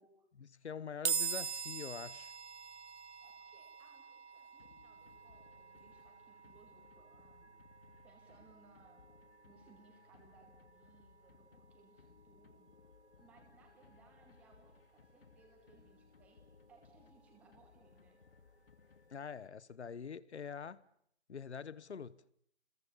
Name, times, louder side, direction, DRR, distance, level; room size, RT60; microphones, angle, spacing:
voice 1, 0.4-2.3 19.1-20.8 21.3-22.2, left 6 dB, 75° left, 1.3 m, -45 dB
sound 1, 1.1-14.4, right 6 dB, 80° right, 1.0 m, -45 dB
voice 2, 3.2-7.5 8.0-9.0 9.4-12.8 13.2-18.2, right 4 dB, 5° right, 2.3 m, -66 dB
sound 2, 4.6-19.6, left 4 dB, 60° left, 2.6 m, -64 dB
30.0 x 22.0 x 7.2 m
hypercardioid pair, 180°, 34 cm